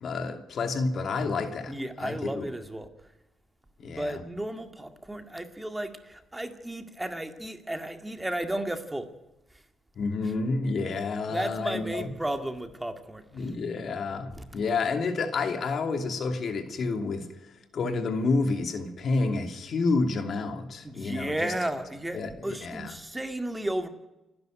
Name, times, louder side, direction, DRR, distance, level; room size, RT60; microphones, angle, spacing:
voice 1, 0.0-2.5 3.8-4.2 10.0-12.1 13.3-17.3 17.7-21.5 22.1-22.9, left 3 dB, 55° left, 2.8 m, -29 dB
voice 2, 1.7-2.9 3.8-9.1 11.3-13.5 14.4-14.5 20.8-23.9, right 1 dB, 10° right, 2.1 m, -34 dB
29.0 x 10.5 x 9.2 m
cardioid pair, 90°, 0 cm